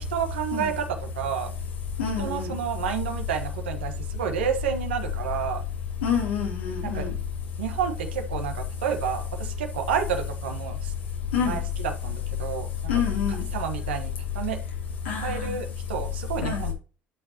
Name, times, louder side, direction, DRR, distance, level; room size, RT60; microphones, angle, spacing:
voice 1, 0.0-1.5 2.2-5.6 6.8-7.1 7.6-10.9 11.4-12.7 13.5-14.6 15.2-16.7, right 8 dB, 90° right, 1.3 m, -30 dB
voice 2, 2.0-2.6 6.0-7.1 11.3-11.6 12.9-13.4 15.0-15.5 16.4-16.6, left 7 dB, 90° left, 2.9 m, -26 dB
11.5 x 6.2 x 2.9 m
hypercardioid pair, 65°, 6 cm